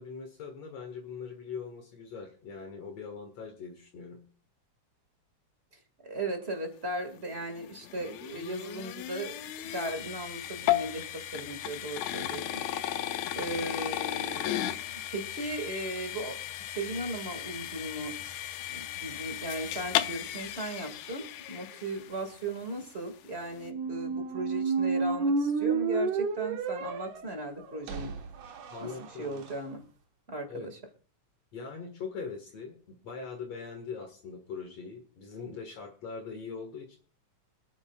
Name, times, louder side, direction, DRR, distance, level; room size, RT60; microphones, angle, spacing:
voice 1, 0.0-4.2 28.7-29.4 30.5-30.7 31.5-37.0, left 5 dB, 60° left, 3 dB, 2.8 m, -41 dB
voice 2, 6.0-12.5 13.3-14.8 15.1-16.4 16.7-18.4 18.7-28.1 28.8-28.9 29.2-29.8 30.3-30.7, right 2 dB, 25° right, 6 dB, 1.9 m, -37 dB
sound 1, 7.2-22.4, left 13 dB, 75° left, 1.9 m, -35 dB
sound 2, 23.6-29.5, right 4 dB, 80° right, 2.8 m, -31 dB
26.5 x 9.7 x 2.4 m, 0.39 s
omnidirectional pair, 3.4 m